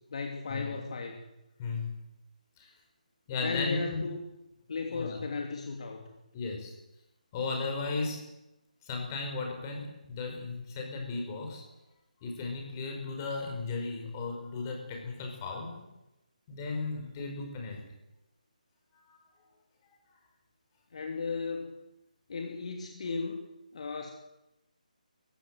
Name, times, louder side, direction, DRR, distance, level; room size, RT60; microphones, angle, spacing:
voice 1, 0.1-1.3 3.4-4.2 4.7-6.1 17.2-17.4 20.9-21.7 22.3-23.4 23.7-24.1, left 4 dB, 50° left, 2 dB, 2.8 m, -35 dB
voice 2, 1.6-2.0 2.6-2.7 3.3-4.0 4.9-5.2 6.3-6.7 7.3-8.3 8.8-11.6 12.2-15.9 16.5-17.8 19.1-19.2, left 3 dB, 25° left, 2 dB, 5.0 m, -35 dB
23.0 x 15.5 x 7.9 m, 0.92 s
figure-of-eight pair, 155°, 4 cm